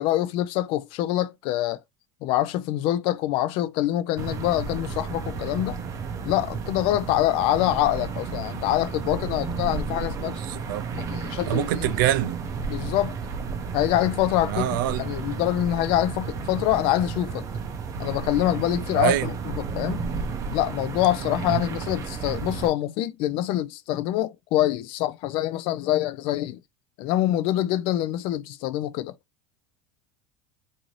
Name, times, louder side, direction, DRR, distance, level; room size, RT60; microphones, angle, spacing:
voice 1, 0.0-1.8 2.2-5.8 6.2-10.4 11.1-11.9 12.7-13.2 13.7-17.5 18.0-20.1 20.5-26.6 27.0-29.1, left 14 dB, 55° left, 0.4 m, -25 dB
sound 1, 4.2-22.7, right 5 dB, 30° right, 0.5 m, -32 dB
voice 2, 10.2-10.8 11.5-12.4 14.4-15.0 18.9-19.3 21.5-21.6, right 13 dB, 90° right, 0.4 m, -25 dB
2.6 x 2.5 x 3.0 m
supercardioid pair, 135°, 11 cm